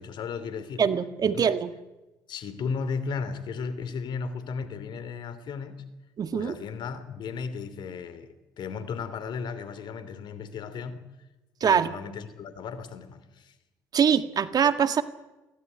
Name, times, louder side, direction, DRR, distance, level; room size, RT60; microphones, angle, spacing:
voice 1, 0.0-0.8 1.2-1.4 2.3-5.8 6.3-11.0 11.6-13.5, left 5 dB, 60° left, 14 dB, 2.9 m, -35 dB
voice 2, 0.8-1.7 6.2-6.5 11.6-11.9 13.9-15.0, right 7 dB, 50° right, 10 dB, 1.9 m, -23 dB
23.5 x 17.0 x 9.5 m, 1.0 s
hypercardioid pair, 60°, 8 cm